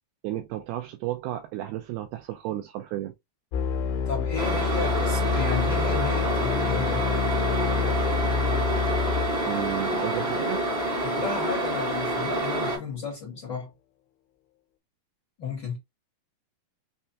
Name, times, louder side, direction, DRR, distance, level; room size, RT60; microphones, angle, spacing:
voice 1, 0.2-3.1 9.4-10.6, right 14 dB, 85° right, 2.2 m, -33 dB
sound 1, 3.5-11.0, left 6 dB, 75° left, 2.7 m, -28 dB
voice 2, 4.0-7.0 11.0-13.7 15.4-15.8, left 5 dB, 60° left, 1.1 m, -33 dB
sound 2, 4.4-12.8, right 1 dB, 35° right, 1.0 m, -28 dB
6.4 x 2.2 x 2.6 m
omnidirectional pair, 4.7 m